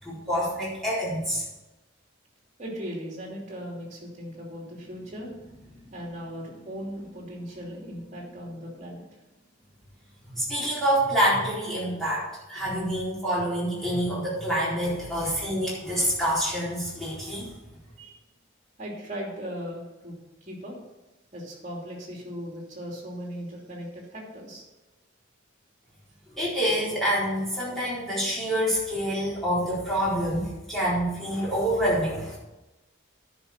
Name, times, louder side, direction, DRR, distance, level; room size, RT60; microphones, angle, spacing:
voice 1, 0.0-1.4 10.3-17.5 26.4-32.4, equal, ahead, -9 dB, 4.1 m, -27 dB
voice 2, 2.6-9.1 18.0-18.2 18.8-20.7 21.3-24.6, equal, 35° right, -2 dB, 2.9 m, -38 dB
10.5 x 6.0 x 6.6 m, 1.0 s
head